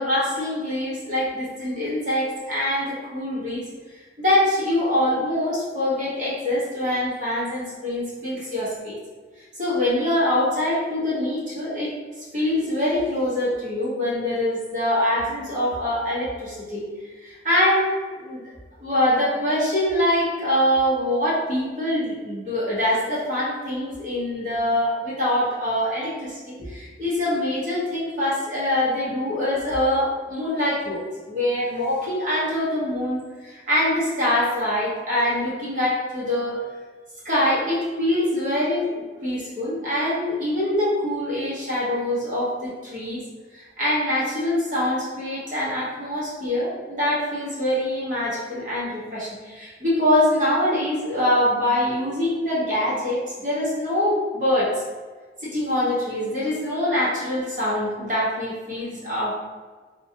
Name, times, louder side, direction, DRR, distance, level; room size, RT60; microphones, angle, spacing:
voice 1, 0.0-9.0 9.5-11.9 12.3-16.8 17.2-18.4 18.8-31.0 31.3-36.6 37.2-43.2 43.5-54.8 55.4-59.3, left 1 dB, 45° right, -8 dB, 1.3 m, -24 dB
3.1 x 3.0 x 2.8 m, 1.4 s
head